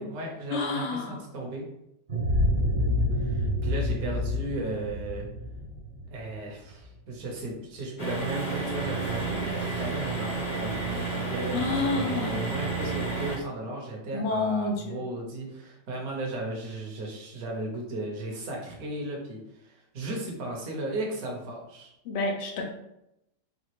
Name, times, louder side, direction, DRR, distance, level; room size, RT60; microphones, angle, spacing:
voice 1, 0.0-1.7 3.1-5.3 6.1-21.9, right 2 dB, 60° right, -1 dB, 1.4 m, -35 dB
voice 2, 0.5-1.2 11.5-12.4 14.1-15.0 22.1-22.7, left 3 dB, 70° left, 2 dB, 0.6 m, -29 dB
sound 1, 2.1-6.8, left 1 dB, 40° right, 0.7 m, -28 dB
sound 2, 8.0-13.4, right 3 dB, 35° left, 0.7 m, -31 dB
5.1 x 2.4 x 3.0 m, 0.84 s
omnidirectional pair, 1.9 m